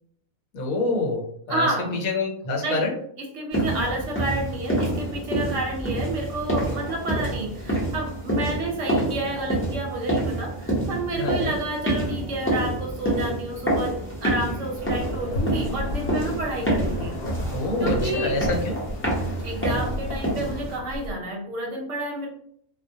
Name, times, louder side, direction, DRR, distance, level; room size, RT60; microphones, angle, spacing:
voice 1, 0.5-1.7 2.0-2.9 11.1-11.6 17.5-18.8, left 3 dB, 80° left, 1 dB, 1.1 m, -26 dB
voice 2, 1.5-2.0 2.6-2.9 3.2-17.1 17.8-18.4 19.4-22.3, right 1 dB, 70° right, 1 dB, 0.8 m, -30 dB
sound 1, 3.5-20.8, right 1 dB, 15° left, 0.4 m, -27 dB
sound 2, 14.7-21.1, left 1 dB, 60° left, 0.6 m, -34 dB
2.2 x 2.1 x 2.6 m, 0.66 s
omnidirectional pair, 1.5 m